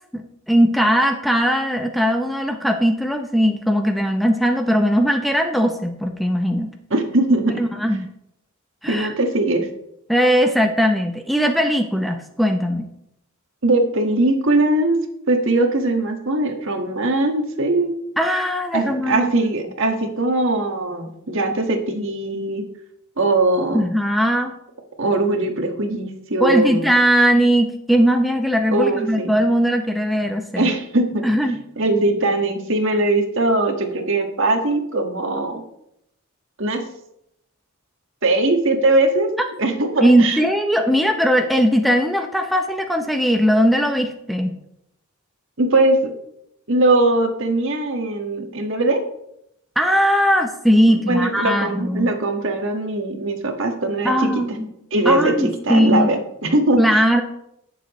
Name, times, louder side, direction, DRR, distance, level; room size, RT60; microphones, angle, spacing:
voice 1, 0.1-6.7 7.6-8.1 8.8-9.1 10.1-12.9 18.2-19.3 23.7-24.6 26.4-30.7 31.2-31.6 40.0-44.6 49.8-52.1 54.0-54.7 55.1-56.1 56.8-57.2, equal, ahead, 3 dB, 0.6 m, -19 dB
voice 2, 6.9-7.6 8.9-9.7 13.6-15.0 15.3-17.9 18.7-22.6 23.2-23.8 25.0-26.9 28.7-29.3 30.6-31.3 31.8-35.6 36.6-36.9 38.2-39.3 39.6-40.5 45.6-46.1 46.7-49.0 50.9-54.3 54.9-57.0, right 2 dB, 60° right, 4 dB, 1.6 m, -20 dB
17.5 x 6.9 x 3.1 m, 0.78 s
head